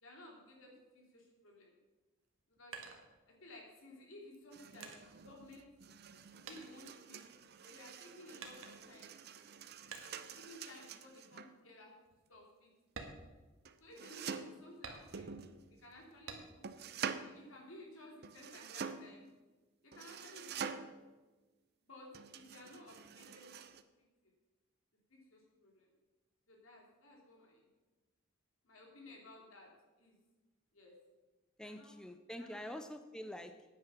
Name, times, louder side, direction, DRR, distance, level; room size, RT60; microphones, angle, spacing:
voice 1, 0.0-1.8 2.6-2.7 3.3-5.7 6.3-7.3 7.6-9.1 10.2-11.9 12.3-12.7 13.8-15.3 15.8-16.6 17.2-19.2 19.8-20.7 21.8-22.1 22.3-23.5 25.1-25.9 26.5-27.7 28.6-29.7 30.0-30.2 30.7-30.9 31.6-32.0 32.3-32.8 33.1-33.2, left 1 dB, 80° left, -1 dB, 3.2 m, -56 dB
sound 1, 2.2-3.7 4.3-6.2 6.5-7.6 8.4-9.1 9.9-10.4 10.8-11.1 11.5-11.6 12.1-12.2 12.8-14.0 14.8-15.5 16.3-16.8 17.2-18.1, right 4 dB, 75° right, 1.6 m, -52 dB
sound 2, 4.5-11.6 13.7-14.6 15.1-16.0 16.6-17.3 18.2-19.2 19.9-21.1 22.1-23.8, right 6 dB, 50° right, 0.6 m, -47 dB
voice 2, 31.6-33.6, equal, 5° left, 8 dB, 0.4 m, -46 dB
9.7 x 9.3 x 6.0 m, 1.2 s
head